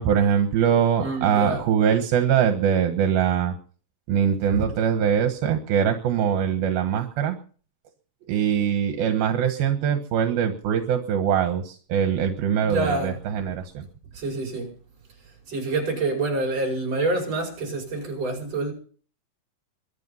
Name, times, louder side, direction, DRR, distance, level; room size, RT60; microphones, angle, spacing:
voice 1, 0.0-3.5 4.1-7.4 8.3-13.8, right 8 dB, 80° right, 3.2 m, -22 dB
voice 2, 1.0-1.6 12.6-13.2 14.2-14.7 15.5-18.7, right 2 dB, 40° right, 6.5 m, -27 dB
23.5 x 9.7 x 5.7 m
omnidirectional pair, 4.3 m